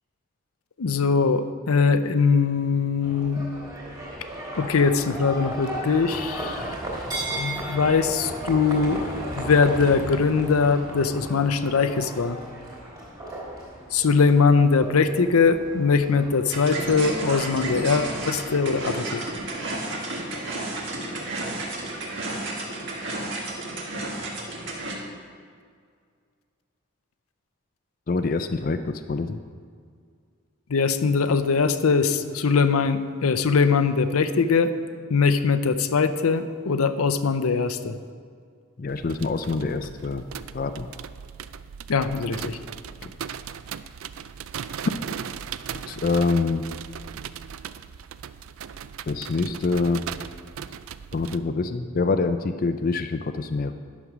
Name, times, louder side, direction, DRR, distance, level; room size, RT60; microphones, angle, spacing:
voice 1, 0.8-3.4 4.6-6.6 7.4-9.0 9.4-12.4 13.9-19.2 30.7-34.7 35.1-37.9 41.9-42.6, left 5 dB, 90° left, 10 dB, 0.6 m, -21 dB
Livestock farm animals working animals, 3.0-19.5, right 1 dB, 15° right, 2.9 m, -36 dB
sound 1, 16.5-24.9, right 2 dB, 55° right, 1.9 m, -32 dB
voice 2, 28.1-29.4 38.8-40.2 40.5-40.9 45.9-46.7 49.1-50.0 51.1-53.7, left 3 dB, 40° left, 9 dB, 0.4 m, -25 dB
sound 2, 38.9-51.4, right 8 dB, 75° right, 0.4 m, -38 dB
11.0 x 6.4 x 6.0 m, 2.1 s
head